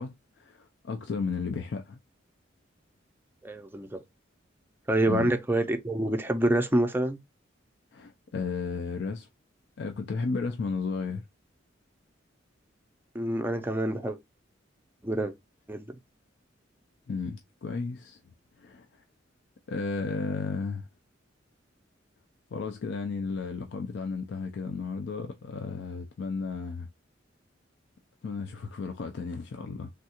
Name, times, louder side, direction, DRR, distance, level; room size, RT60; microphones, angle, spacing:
voice 1, 0.0-2.0 5.1-5.4 7.9-9.3 9.8-11.2 17.1-18.2 18.6-18.9 19.7-20.9 22.5-26.9 28.2-29.9, left 4 dB, 65° left, 0.4 m, -33 dB
voice 2, 3.4-4.0 4.9-7.2 13.1-14.2 15.0-15.3 15.7-15.9, right 1 dB, 10° right, 0.4 m, -27 dB
3.4 x 2.3 x 2.8 m
head